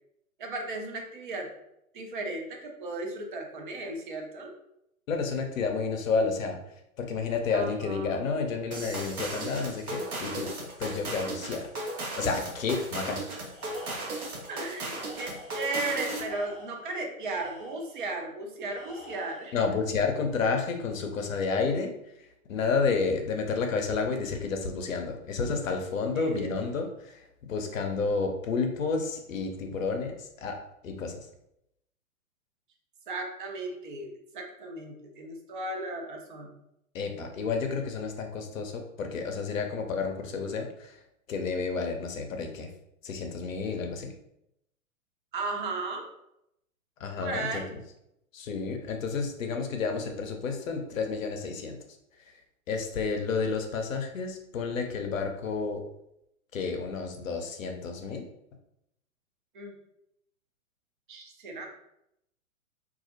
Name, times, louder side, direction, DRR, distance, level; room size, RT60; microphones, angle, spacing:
voice 1, 0.4-1.5 1.9-4.5 7.5-8.2 14.5-19.6 26.2-26.5 33.1-36.5 45.3-46.1 47.2-47.7 59.5-59.8 61.1-61.7, right 2 dB, 40° right, 2 dB, 0.5 m, -35 dB
voice 2, 5.1-6.6 7.0-10.5 10.8-11.7 12.2-13.3 19.5-21.9 22.2-31.3 36.9-41.0 41.3-42.7 43.0-44.1 47.0-47.8 48.3-51.8 52.2-52.3 52.7-55.8 56.5-58.3, left 4 dB, 65° left, 5 dB, 0.6 m, -30 dB
sound 1, 8.7-16.4, right 2 dB, 80° right, 0.7 m, -36 dB
Tools, 13.5-14.4 14.9-15.7 16.1-18.0 18.7-19.6, left 1 dB, 15° left, 0.8 m, -48 dB
2.3 x 2.0 x 2.7 m, 0.80 s
figure-of-eight pair, 115°, 43 cm